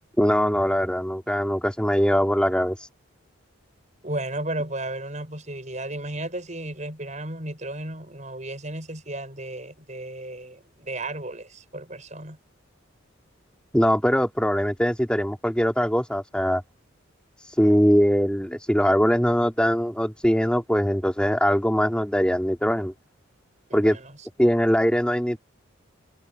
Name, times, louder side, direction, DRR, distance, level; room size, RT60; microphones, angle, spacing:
voice 1, 0.2-2.9 13.7-16.6 17.4-22.9 23.7-24.0 24.4-25.4, equal, 5° left, 3.3 m, -22 dB
voice 2, 4.0-12.4 23.7-24.1, right 1 dB, 35° right, 5.9 m, -34 dB
head